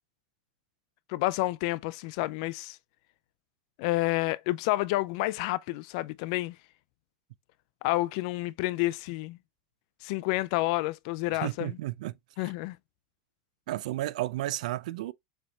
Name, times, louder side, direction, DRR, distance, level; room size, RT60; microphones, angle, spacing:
voice 1, 1.1-2.8 3.8-6.6 7.8-9.4 10.0-11.8 12.4-12.8, left 19 dB, 60° left, 0.3 m, -29 dB
voice 2, 11.4-12.1 13.7-15.1, right 15 dB, 75° right, 0.4 m, -32 dB
7.0 x 3.3 x 2.3 m
supercardioid pair, 115°, 4 cm